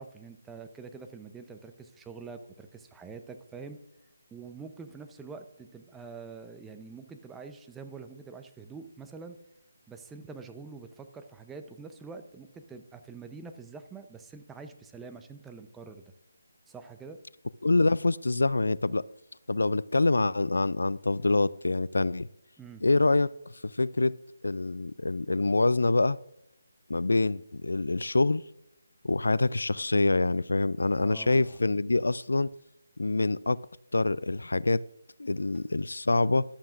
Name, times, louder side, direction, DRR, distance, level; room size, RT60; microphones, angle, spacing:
voice 1, 0.0-3.8 4.3-9.4 9.9-16.0 16.7-17.2 22.6-22.8 31.0-31.6, right 4 dB, 5° right, 7 dB, 0.7 m, -45 dB
voice 2, 17.6-19.0 19.5-22.3 22.8-23.3 23.6-24.1 24.4-26.2 26.9-28.4 29.0-32.5 33.0-33.6 33.9-34.8 35.2-36.4, left 2 dB, 80° left, 20 dB, 0.4 m, -25 dB
14.0 x 11.5 x 2.5 m, 0.84 s
figure-of-eight pair, 160°, 0 cm